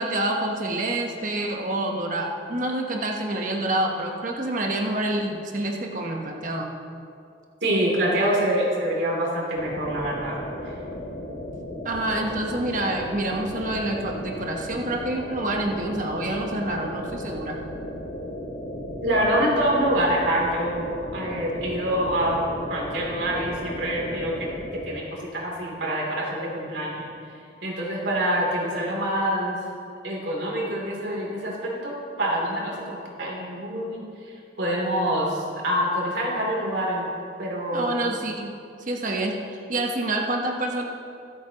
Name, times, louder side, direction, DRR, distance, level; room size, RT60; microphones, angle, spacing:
voice 1, 0.0-6.7 11.8-17.6 37.7-38.5 38.8-40.8, right 1 dB, 45° right, 1 dB, 1.2 m, -27 dB
voice 2, 7.6-10.4 10.6-10.7 19.0-22.4 22.7-24.5 24.8-27.1 27.6-29.6 30.0-37.1 37.4-38.1, right 1 dB, 80° right, -3 dB, 3.1 m, -26 dB
sound 1, 9.5-24.9, equal, 85° left, 2.2 m, -35 dB
23.5 x 8.3 x 3.0 m, 2.4 s
head